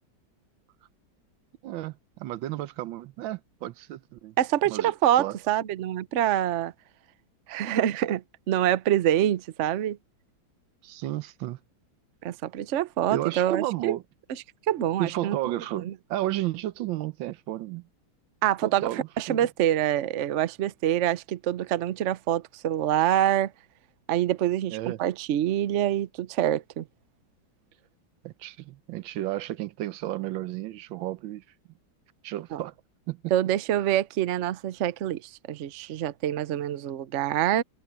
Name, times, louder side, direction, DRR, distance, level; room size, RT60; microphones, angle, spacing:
voice 1, 1.6-4.3 4.7-4.9 5.2-5.4 10.8-11.6 13.1-14.0 15.0-17.8 18.6-19.5 24.7-25.0 28.2-31.4 32.2-32.7 33.1-33.2, right 14 dB, 85° right, 1.4 m, -32 dB
voice 2, 4.4-6.7 7.5-10.0 12.2-14.0 14.7-15.4 15.8-15.9 18.4-23.5 24.1-26.8 32.5-32.6 33.3-37.6, right 11 dB, 60° right, 0.7 m, -26 dB
omnidirectional pair, 2.1 m